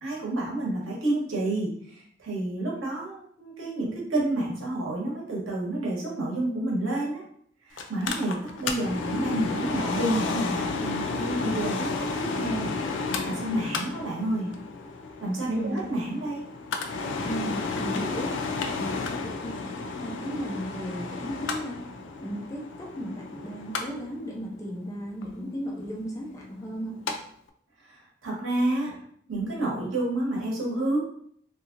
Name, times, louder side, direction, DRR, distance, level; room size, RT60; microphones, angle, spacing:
voice 1, 0.0-7.2 7.6-12.7 13.0-14.5 15.2-16.4 27.9-29.0 29.3-31.0, right 1 dB, 85° right, -3 dB, 1.1 m, -29 dB
Mechanical fan, 7.8-27.1 27.5-27.6, left 4 dB, 65° left, 0.4 m, -32 dB
voice 2, 15.5-15.8 17.2-18.3 18.7-21.9 22.1-27.0, equal, 15° left, -2 dB, 0.6 m, -35 dB
2.9 x 2.7 x 2.5 m, 0.64 s
head